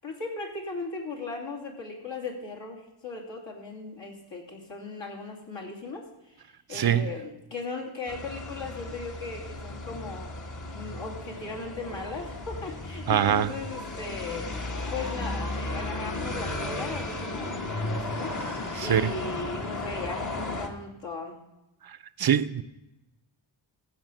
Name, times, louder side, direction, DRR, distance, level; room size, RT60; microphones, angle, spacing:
voice 1, 0.0-10.3 10.7-18.3 18.8-21.4, left 3 dB, 65° left, 2.7 m, -38 dB
voice 2, 6.7-7.1 13.1-13.5 18.8-19.1 22.2-22.6, right 9 dB, 50° right, 0.6 m, -23 dB
sound 1, 8.1-20.7, left 2 dB, 40° left, 1.3 m, -35 dB
15.0 x 5.2 x 6.6 m
wide cardioid pair, 85°, 47 cm